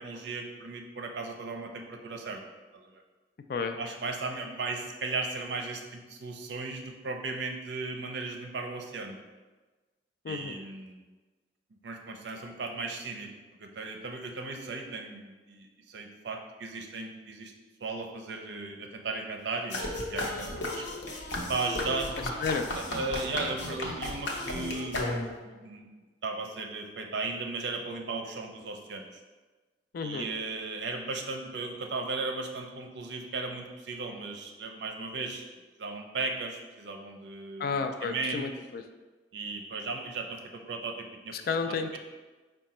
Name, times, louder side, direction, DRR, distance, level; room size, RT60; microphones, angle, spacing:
voice 1, 0.0-2.4 2.7-3.0 3.8-9.2 10.3-11.1 11.8-13.3 13.6-17.5 17.8-20.8 21.5-22.1 22.9-25.9 26.2-29.2 30.0-35.5 35.8-38.5 39.3-41.3 41.6-42.0, right 3 dB, 75° right, 3 dB, 0.5 m, -36 dB
sound 1, 19.7-25.5, left 1 dB, 90° left, 0.7 m, -34 dB
voice 2, 29.9-30.3 37.6-38.8 41.3-42.0, left 5 dB, 55° left, 6 dB, 0.3 m, -31 dB
4.8 x 2.2 x 4.1 m, 1.3 s
head